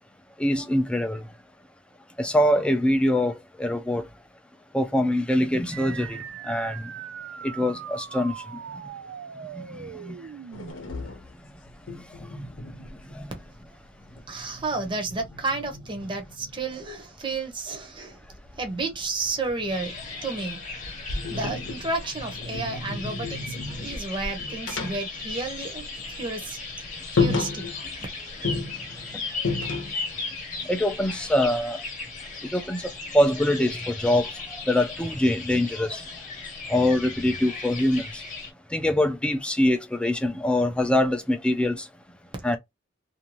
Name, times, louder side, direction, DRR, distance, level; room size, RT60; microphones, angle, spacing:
voice 1, 0.4-1.2 2.2-3.3 3.6-4.0 4.7-6.2 6.5-6.7 7.6-8.3 10.1-10.2 13.2-13.3 30.7-31.8 32.5-32.8 33.1-34.2 34.7-36.0 36.7-38.0 38.7-41.8 42.4-42.6, left 1 dB, 5° left, 0.4 m, -23 dB
sound 1, 5.7-10.7, right 8 dB, 70° right, 0.3 m, -40 dB
sound 2, 10.5-13.7 14.0-16.9 18.3-20.3 20.7-26.0 26.3-26.4 26.8-26.9 27.2-28.1 28.4-30.2, left 3 dB, 80° left, 0.7 m, -33 dB
voice 2, 14.3-18.2 18.6-19.9 20.2-20.9 21.3-26.6 27.1-27.6, right 3 dB, 25° right, 0.8 m, -32 dB
sound 3, 19.7-38.5, left 4 dB, 40° left, 1.0 m, -37 dB
2.6 x 2.2 x 2.8 m
head